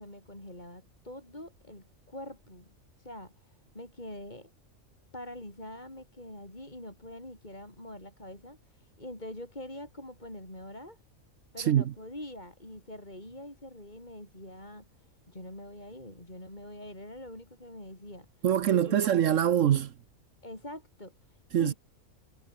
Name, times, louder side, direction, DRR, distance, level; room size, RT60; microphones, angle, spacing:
voice 1, 0.0-2.7 3.0-4.5 5.1-11.0 11.5-14.9 15.3-18.3 18.7-19.0 20.4-21.7, left 1 dB, 30° left, 5.9 m, -44 dB
voice 2, 18.4-19.9 21.5-21.7, right 10 dB, 70° right, 1.1 m, -24 dB
omnidirectional pair, 1.4 m